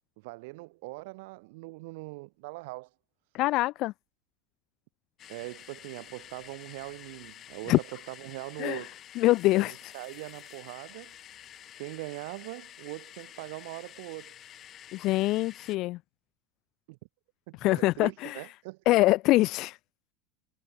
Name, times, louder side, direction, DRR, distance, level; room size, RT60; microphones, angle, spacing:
voice 1, 0.2-2.9 5.3-9.0 9.6-11.1 11.8-14.3 16.9-17.0 17.5-19.1, right 25 dB, 75° right, 3.0 m, -42 dB
voice 2, 3.3-3.9 7.7-7.8 8.6-8.8 9.2-9.9 14.9-16.0 17.6-18.4 18.9-19.8, left 18 dB, 55° left, 0.6 m, -24 dB
sound 1, 5.2-15.8, left 11 dB, 40° left, 7.0 m, -50 dB
supercardioid pair, 115°, 0 cm